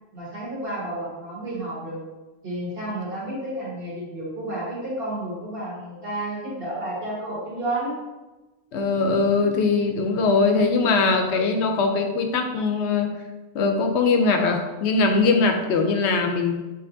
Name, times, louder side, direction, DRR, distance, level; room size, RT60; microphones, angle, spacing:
voice 1, 0.1-2.0 2.4-8.0, right 1 dB, 60° right, -6 dB, 1.8 m, -31 dB
voice 2, 8.7-13.1 13.5-16.6, left 4 dB, 85° left, 5 dB, 0.9 m, -21 dB
5.6 x 3.2 x 2.6 m, 1.1 s
omnidirectional pair, 1.1 m